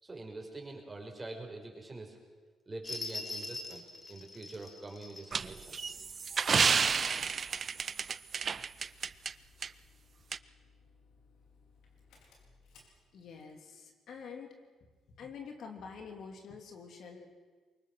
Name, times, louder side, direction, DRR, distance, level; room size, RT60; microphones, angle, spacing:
voice 1, 0.0-2.2 2.7-5.9, right 2 dB, 20° right, 1 dB, 5.4 m, -45 dB
sound 1, 2.8-6.8 7.3-7.4, left 3 dB, 30° left, 2.2 m, -43 dB
sound 2, 5.3-9.3 9.6-9.7 10.3-10.4, right 6 dB, 45° right, 0.6 m, -30 dB
Engine starting, 5.7-13.6, left 4 dB, 85° left, 4.5 m, -63 dB
voice 2, 13.1-14.5 15.2-17.3, left 5 dB, 65° left, 3 dB, 2.9 m, -47 dB
24.0 x 22.0 x 6.4 m, 1.4 s
cardioid pair, 90°, 0 cm